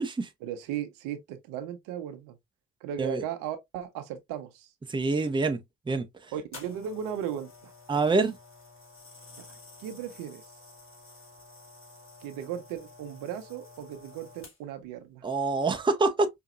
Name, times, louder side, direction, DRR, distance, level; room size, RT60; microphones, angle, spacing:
voice 1, 0.4-2.4 2.8-4.7 6.3-7.7 9.4-9.5 9.8-10.4 12.2-15.2, right 9 dB, 70° right, 1.0 m, -36 dB
voice 2, 4.9-5.6 5.9-6.1 7.9-8.4 15.2-16.3, right 3 dB, 15° right, 0.8 m, -26 dB
sound 1, 6.5-14.9 15.6-15.8, left 3 dB, 35° left, 2.4 m, -51 dB
5.2 x 2.8 x 2.4 m
hypercardioid pair, 45°, 34 cm